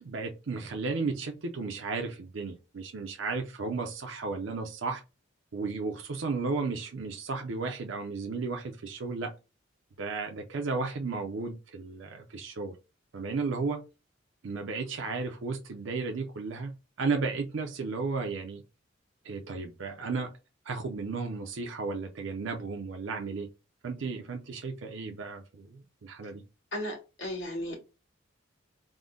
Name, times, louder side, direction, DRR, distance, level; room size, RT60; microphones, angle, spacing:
voice 1, 0.0-5.0 5.5-9.3 10.0-12.8 13.1-13.8 14.4-18.6 19.2-20.3 20.7-23.5 23.8-26.4, right 4 dB, 70° right, 0.5 m, -34 dB
voice 2, 26.7-27.8, left 1 dB, 65° left, 1.8 m, -35 dB
3.6 x 2.1 x 3.7 m
head